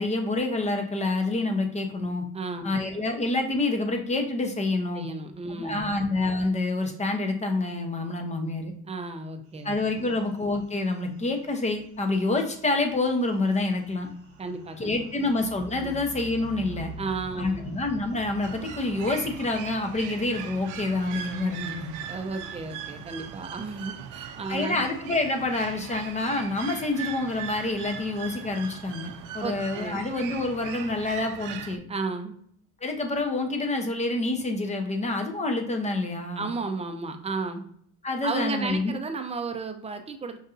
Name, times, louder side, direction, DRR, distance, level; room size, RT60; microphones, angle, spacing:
voice 1, 0.0-2.2 2.6-5.1 5.5-8.7 9.6-14.1 14.8-16.9 17.4-21.9 24.5-31.8 32.8-36.5 38.0-39.0, left 2 dB, 20° left, 5 dB, 0.7 m, -27 dB
voice 2, 2.3-2.8 4.9-6.0 8.9-10.2 14.4-15.3 15.8-16.0 17.0-17.7 22.0-24.8 29.4-30.0 31.9-32.3 36.4-37.6 38.2-40.4, right 3 dB, 20° right, 6 dB, 0.5 m, -34 dB
sound 1, 9.5-24.1, right 4 dB, 50° right, 0.9 m, -47 dB
sound 2, 18.4-31.8, right 8 dB, 75° right, 0.5 m, -39 dB
5.5 x 2.6 x 2.4 m, 0.63 s
cardioid pair, 115°, 31 cm